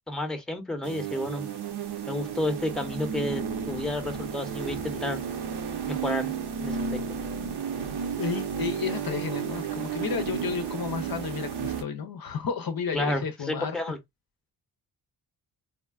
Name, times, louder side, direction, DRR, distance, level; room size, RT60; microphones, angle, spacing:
voice 1, 0.1-1.5 2.1-5.2 5.8-6.3 6.6-7.0 12.9-14.0, left 1 dB, ahead, 0.8 m, -31 dB
sound 1, 0.8-11.8, right 7 dB, 60° right, 0.8 m, -33 dB
voice 2, 8.2-13.8, left 6 dB, 55° left, 0.6 m, -32 dB
3.6 x 2.2 x 2.3 m
cardioid pair, 55°, 44 cm